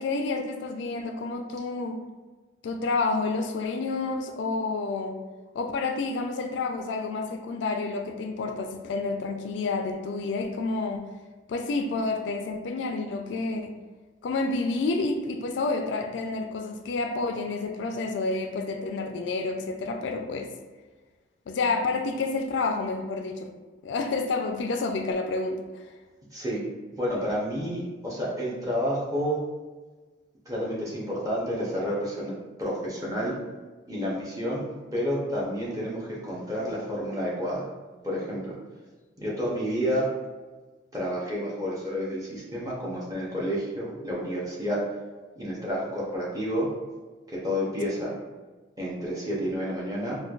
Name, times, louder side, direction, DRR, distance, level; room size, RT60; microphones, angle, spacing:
voice 1, 0.0-2.0 2.6-5.1 5.5-11.1 11.5-13.8 14.2-20.5 21.5-23.5 23.8-25.6, left 3 dB, 65° left, 5 dB, 0.3 m, -29 dB
voice 2, 26.3-26.6 27.0-29.4 30.5-32.3 32.6-33.4 33.9-34.6 34.9-37.6 38.0-38.5 39.2-40.1 40.9-44.8 45.4-46.7 47.3-48.1 48.8-50.2, equal, 20° right, -5 dB, 0.7 m, -30 dB
4.3 x 2.2 x 2.3 m, 1.3 s
head